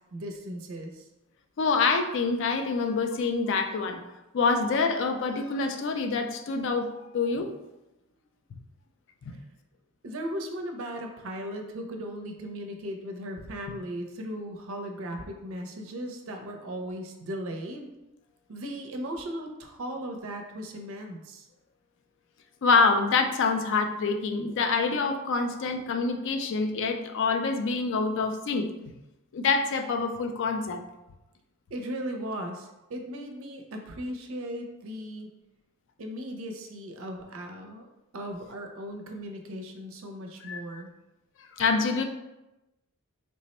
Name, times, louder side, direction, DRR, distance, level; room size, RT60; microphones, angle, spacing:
voice 1, 0.1-1.1 10.0-17.9 18.5-21.5 31.7-35.3 36.0-37.9 38.1-40.9, equal, 60° right, 4 dB, 0.5 m, -37 dB
voice 2, 1.6-4.0 4.3-7.5 22.6-28.7 29.3-30.8 40.4-40.6 41.5-42.0, left 4 dB, 55° left, 6 dB, 0.3 m, -26 dB
3.3 x 2.0 x 4.1 m, 0.98 s
head